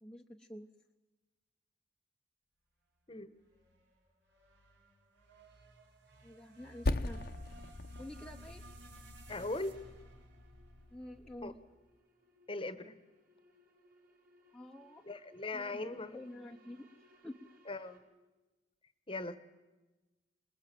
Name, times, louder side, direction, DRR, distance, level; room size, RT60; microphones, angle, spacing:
voice 1, 0.0-0.7 6.2-7.2 8.0-8.6 10.9-11.5 14.5-15.0 15.5-16.9 17.2-17.4, left 1 dB, 5° left, 1 dB, 0.8 m, -48 dB
gated riser, 3.4-11.8, right 2 dB, 70° right, 3.5 m, -59 dB
Percussion, 6.9-11.7, left 2 dB, 55° left, 0.8 m, -40 dB
sound 1, 8.9-18.0, equal, 55° right, 4.6 m, -68 dB
voice 2, 9.3-9.8 11.4-11.5 12.5-12.9 15.0-16.2 17.7-18.0 19.1-19.4, left 2 dB, 30° left, 12 dB, 1.1 m, -39 dB
27.0 x 20.5 x 7.7 m, 1.1 s
head